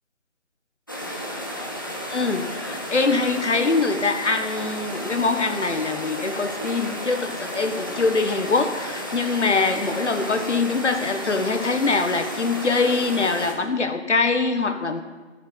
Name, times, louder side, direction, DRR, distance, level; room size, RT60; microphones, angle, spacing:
sound 1, 0.9-13.5, equal, 20° left, 0.9 m, -32 dB
voice 1, 2.1-15.0, left 4 dB, 75° left, 7 dB, 1.7 m, -23 dB
14.0 x 7.1 x 9.6 m, 1.3 s
hypercardioid pair, 180°, 35 cm